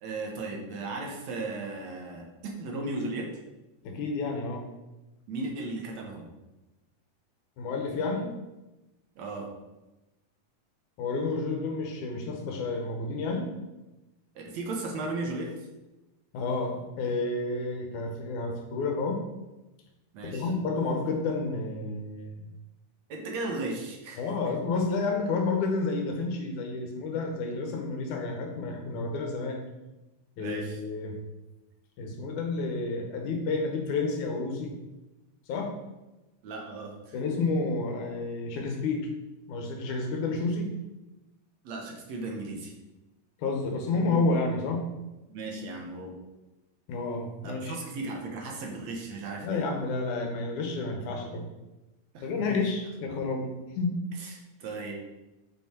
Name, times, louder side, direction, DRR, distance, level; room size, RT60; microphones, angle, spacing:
voice 1, 0.0-3.3 5.3-6.3 9.2-9.5 14.4-15.5 20.1-20.5 23.1-24.5 30.4-30.8 36.4-37.2 41.6-42.7 45.3-46.2 47.4-49.6 52.1-52.7 54.2-54.9, right 2 dB, 65° right, 0 dB, 2.2 m, -36 dB
voice 2, 3.8-4.7 7.6-8.3 11.0-13.5 16.3-19.2 20.2-22.4 24.2-29.6 30.4-31.2 32.0-34.7 35.5-35.7 37.1-39.1 39.5-40.7 43.4-44.8 46.9-47.8 49.4-51.5 52.2-54.0, left 3 dB, 80° left, 2 dB, 2.6 m, -30 dB
6.6 x 6.1 x 4.5 m, 1.0 s
omnidirectional pair, 3.5 m